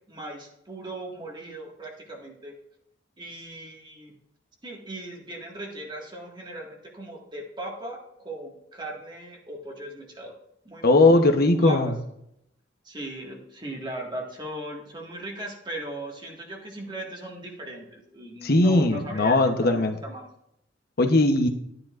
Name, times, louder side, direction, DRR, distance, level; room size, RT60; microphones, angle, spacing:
voice 1, 0.1-2.6 3.2-4.1 4.6-10.3 10.7-11.0 11.6-11.9 12.9-20.3, right 1 dB, 25° right, -1 dB, 1.8 m, -38 dB
voice 2, 10.8-11.9 18.4-20.0 21.0-21.5, left 2 dB, 55° left, 5 dB, 1.0 m, -19 dB
13.0 x 9.8 x 2.5 m, 0.78 s
head